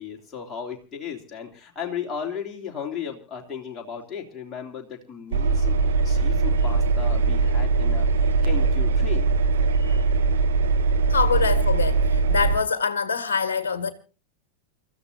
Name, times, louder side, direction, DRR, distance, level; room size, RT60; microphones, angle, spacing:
voice 1, 0.0-9.3, left 7 dB, 20° left, 3.3 m, -35 dB
Engine, 5.3-12.6, right 4 dB, 65° right, 2.1 m, -21 dB
voice 2, 11.1-13.9, left 5 dB, 60° left, 1.5 m, -25 dB
29.0 x 14.0 x 2.8 m
figure-of-eight pair, 90°, 0 cm